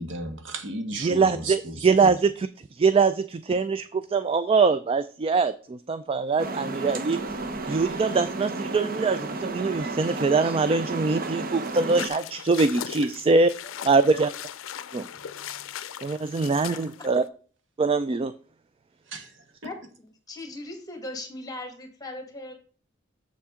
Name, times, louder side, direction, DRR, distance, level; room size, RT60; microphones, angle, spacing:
voice 1, 0.0-2.1 16.3-16.5 19.1-19.4, right 2 dB, 65° right, 1.4 m, -35 dB
voice 2, 1.0-7.2 7.6-13.5 13.8-14.3 14.9-15.1 16.0-17.2 17.8-18.3, right 4 dB, 30° right, 0.3 m, -23 dB
sound 1, 6.4-12.1, right 2 dB, 45° right, 0.8 m, -32 dB
sound 2, 11.6-17.3, left 9 dB, 85° left, 0.5 m, -39 dB
voice 3, 16.7-17.1 19.6-22.5, left 2 dB, 20° left, 1.7 m, -39 dB
7.2 x 7.1 x 3.7 m
head